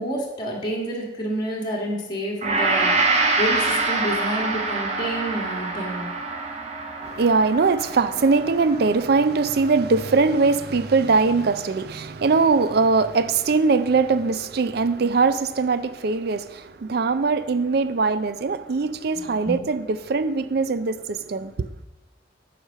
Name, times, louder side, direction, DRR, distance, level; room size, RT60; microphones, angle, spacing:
voice 1, 0.0-6.1 19.2-19.7, right 1 dB, 25° left, 1.5 m, -29 dB
Gong, 2.4-10.8 11.2-11.3, right 3 dB, 35° right, 0.9 m, -26 dB
voice 2, 7.0-21.7, right 4 dB, 55° right, 0.4 m, -21 dB
7.9 x 4.9 x 5.6 m
head